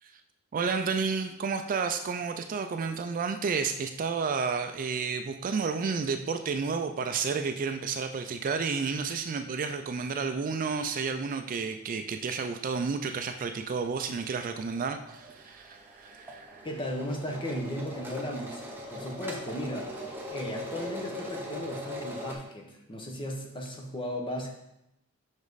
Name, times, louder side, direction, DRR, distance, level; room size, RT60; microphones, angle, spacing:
voice 1, 0.5-16.6, right 5 dB, 40° right, 7 dB, 0.3 m, -31 dB
sound 1, 13.6-13.9 14.2-14.3 14.5-22.3, left 1 dB, 10° right, 0.9 m, -41 dB
voice 2, 16.6-20.0 20.3-24.5, equal, 25° left, 2 dB, 0.9 m, -36 dB
6.1 x 5.2 x 4.0 m, 0.86 s
head